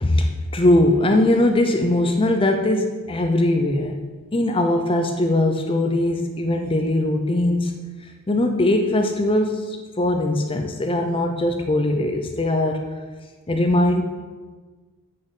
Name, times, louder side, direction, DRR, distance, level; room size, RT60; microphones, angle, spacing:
voice 1, 0.0-3.9 4.3-7.8 8.3-12.8 13.5-14.0, left 1 dB, 25° left, 5 dB, 0.6 m, -20 dB
7.8 x 6.9 x 5.4 m, 1.4 s
head